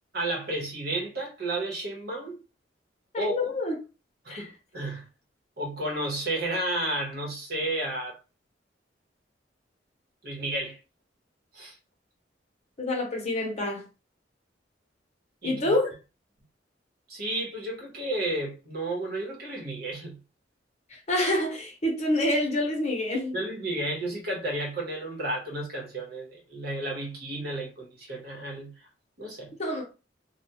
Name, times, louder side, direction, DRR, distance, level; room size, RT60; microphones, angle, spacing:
voice 1, 0.1-2.4 3.2-3.4 4.2-5.1 5.6-8.2 10.2-10.8 11.5-11.7 15.4-15.8 17.1-20.2 23.3-28.7 29.2-29.5, right 1 dB, 60° right, 1.0 m, -32 dB
voice 2, 3.1-3.7 4.3-4.4 12.8-13.8 15.4-15.9 21.1-23.3 29.6-29.8, left 1 dB, 40° left, 0.8 m, -27 dB
2.3 x 2.3 x 2.8 m
head